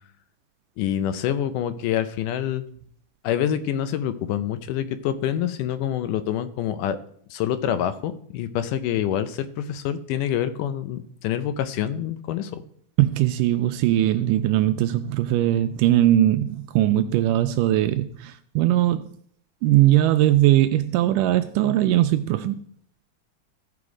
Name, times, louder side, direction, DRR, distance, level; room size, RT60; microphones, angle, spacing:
voice 1, 0.8-2.6 3.2-7.0 7.3-12.6, left 10 dB, 80° left, 12 dB, 2.1 m, -26 dB
voice 2, 13.0-19.1 19.6-22.6, right 13 dB, 80° right, 10 dB, 2.0 m, -20 dB
15.0 x 5.1 x 4.8 m, 0.62 s
omnidirectional pair, 3.9 m